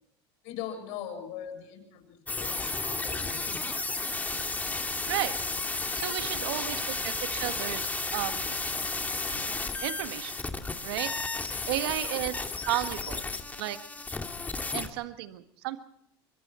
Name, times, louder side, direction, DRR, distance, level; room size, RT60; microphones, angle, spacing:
voice 1, 0.4-3.7, left 9 dB, 65° left, 5 dB, 7.3 m, -41 dB
sound 1, 2.3-14.9, left 3 dB, 10° left, 2.3 m, -33 dB
voice 2, 5.9-8.6 9.8-10.3 10.8-11.3 11.7-12.4 12.7-13.2 13.6-13.8 14.7-15.8, right 14 dB, 75° right, 9 dB, 1.7 m, -33 dB
25.0 x 23.5 x 4.4 m, 0.72 s
supercardioid pair, 110°, 13 cm